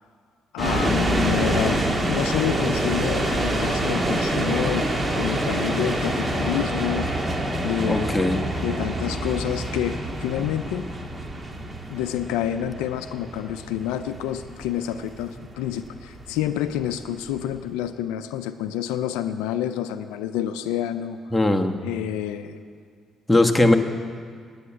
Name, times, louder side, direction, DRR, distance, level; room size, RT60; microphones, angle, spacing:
voice 1, 0.5-1.8 2.1-7.1 7.6-8.2 8.6-10.9 11.9-21.2 21.8-22.6, left 11 dB, 85° left, 9 dB, 0.4 m, -28 dB
sound 1, 0.6-17.6, right 1 dB, 25° right, 1.6 m, -26 dB
voice 2, 7.9-8.5 21.3-21.8 23.3-23.8, left 2 dB, 10° left, 3 dB, 1.2 m, -19 dB
9.7 x 8.5 x 8.8 m, 2.1 s
hypercardioid pair, 50°, 0 cm